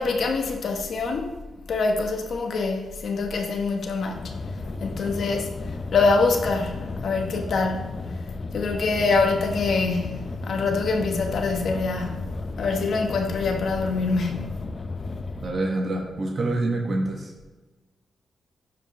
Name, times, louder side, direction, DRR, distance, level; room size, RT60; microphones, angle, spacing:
voice 1, 0.0-1.3 1.7-4.4 4.8-5.5 5.9-7.9 8.5-14.6, left 4 dB, 65° left, 1.0 m, -25 dB
sound 1, 4.1-15.5, left 3 dB, 45° left, 0.6 m, -34 dB
voice 2, 15.4-17.3, right 2 dB, 50° right, 1.3 m, -26 dB
11.0 x 4.9 x 3.1 m
cardioid pair, 85°, 0 cm